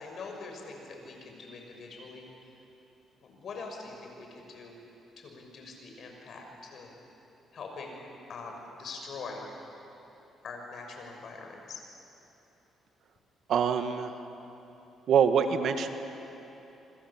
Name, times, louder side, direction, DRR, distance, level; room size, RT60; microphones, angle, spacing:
voice 1, 0.0-2.3 3.2-4.8 5.2-6.9 7.5-8.0 8.3-9.4 10.4-11.8, left 4 dB, 60° left, 2 dB, 6.1 m, -43 dB
voice 2, 13.5-14.1 15.1-15.9, right 7 dB, 70° right, 7 dB, 1.7 m, -24 dB
26.0 x 26.0 x 7.3 m, 3.0 s
cardioid pair, 90°, 0 cm